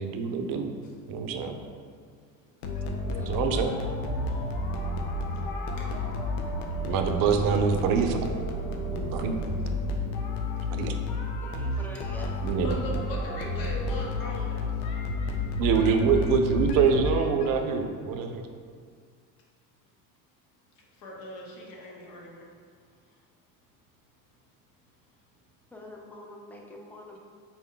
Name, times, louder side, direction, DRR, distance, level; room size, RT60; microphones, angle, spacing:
voice 1, 0.0-0.7 1.1-1.6 3.2-3.7 6.8-8.3 8.9-9.4 10.7-10.9 12.4-12.8 15.6-18.4, right 6 dB, 65° right, 6 dB, 0.5 m, -25 dB
voice 2, 2.4-3.0 4.3-7.1 9.4-10.0 10.6-11.5 12.6-15.0 20.9-22.5, equal, 65° left, -2 dB, 1.0 m, -43 dB
sound 1, 2.6-17.5, left 2 dB, 85° left, 0.5 m, -31 dB
voice 3, 3.1-3.5 11.4-12.4 15.9-16.4 25.7-27.2, left 1 dB, 5° left, 0 dB, 0.4 m, -45 dB
4.2 x 2.2 x 3.7 m, 2.1 s
cardioid pair, 110°, 36 cm